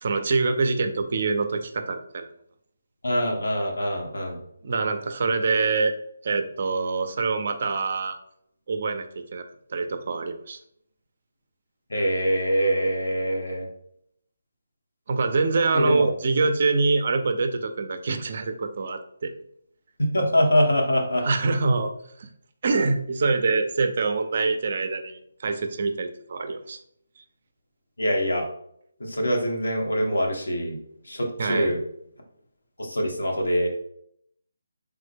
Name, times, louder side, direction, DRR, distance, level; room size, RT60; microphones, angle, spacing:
voice 1, 0.0-2.3 4.6-5.9 6.2-8.2 8.7-9.4 9.7-10.6 15.1-19.3 21.2-21.9 22.2-22.3 22.6-26.8 31.4-31.7, right 4 dB, 50° right, 8 dB, 0.4 m, -25 dB
voice 2, 3.0-4.4 11.9-13.7 15.7-16.1 20.0-21.3 28.0-28.5 29.0-30.8 31.1-31.8 32.8-33.8, equal, 80° left, 1 dB, 0.9 m, -24 dB
3.4 x 2.0 x 3.3 m, 0.71 s
figure-of-eight pair, 155°, 0 cm